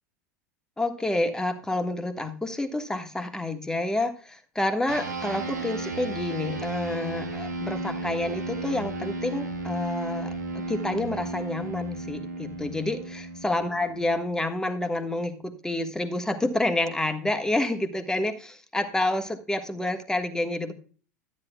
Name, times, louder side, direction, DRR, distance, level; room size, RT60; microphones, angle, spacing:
voice 1, 0.8-20.7, left 2 dB, 5° left, 7 dB, 1.4 m, -29 dB
sound 1, 4.9-14.6, right 2 dB, 80° right, 1.3 m, -34 dB
12.5 x 9.7 x 2.3 m, 0.38 s
figure-of-eight pair, 80°, 9 cm